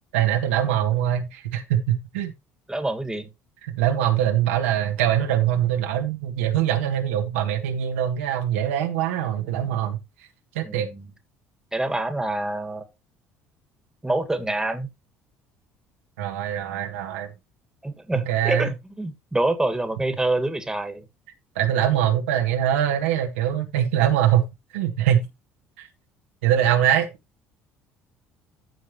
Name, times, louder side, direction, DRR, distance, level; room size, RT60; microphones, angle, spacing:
voice 1, 0.1-2.3 3.6-10.0 10.6-10.9 16.2-17.3 18.1-18.7 21.6-24.4 24.7-25.3 25.8-25.9 26.4-27.1, right 10 dB, 80° right, 1.7 m, -23 dB
voice 2, 2.7-3.3 10.6-11.0 11.7-12.8 14.0-14.9 17.8-21.1, right 2 dB, 10° right, 2.0 m, -26 dB
14.0 x 4.8 x 3.1 m
hypercardioid pair, 60°, 7 cm